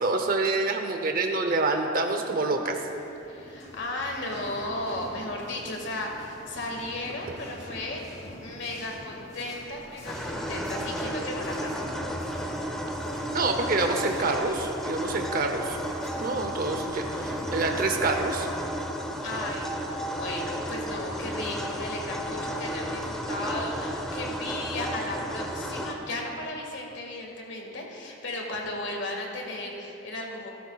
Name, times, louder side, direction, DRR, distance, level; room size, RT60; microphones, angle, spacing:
voice 1, 0.0-2.8 13.3-15.8 16.2-18.5, right 3 dB, 45° right, 4 dB, 0.8 m, -27 dB
sound 1, 2.5-19.9, equal, 35° left, 2.2 m, -46 dB
voice 2, 3.2-8.0 8.4-11.9 19.2-30.5, left 1 dB, 65° left, 0 dB, 1.9 m, -35 dB
sound 2, 10.1-25.9, equal, ahead, 0.8 m, -33 dB
18.0 x 12.5 x 2.4 m, 2.9 s
head